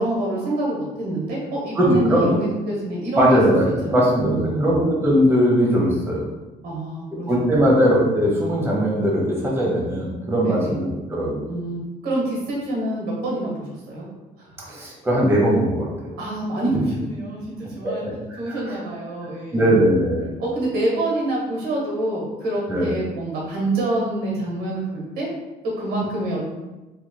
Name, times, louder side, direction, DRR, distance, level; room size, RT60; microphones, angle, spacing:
voice 1, 0.0-3.4 3.8-4.7 6.6-7.8 10.4-10.8 11.5-14.1 14.4-14.5 16.2-18.0 18.4-19.8 20.4-25.3 25.8-26.5, right 1 dB, 75° right, -3 dB, 1.4 m, -26 dB
voice 2, 1.8-2.3 3.2-6.3 7.3-11.5 14.7-15.9 17.8-18.1 18.4-18.6 19.2-20.3 22.7-22.9, equal, 15° right, -4 dB, 1.0 m, -19 dB
4.4 x 3.1 x 2.2 m, 1.1 s
cardioid pair, 110°, 17 cm